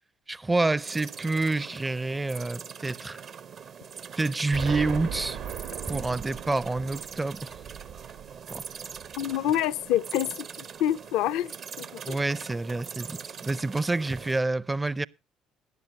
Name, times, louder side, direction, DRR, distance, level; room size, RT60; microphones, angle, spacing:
voice 1, 0.3-3.2 4.2-5.4 5.9-7.6 8.5-8.6 12.0-15.1, right 2 dB, 20° right, 0.5 m, -28 dB
sound 1, 0.8-14.4, right 7 dB, 55° right, 0.8 m, -42 dB
Explosion, 4.5-9.4, right 8 dB, 70° right, 1.1 m, -38 dB
voice 2, 9.2-10.3 10.6-12.2, left 12 dB, 70° left, 0.6 m, -27 dB
17.5 x 10.5 x 3.0 m
hypercardioid pair, 55°, 0 cm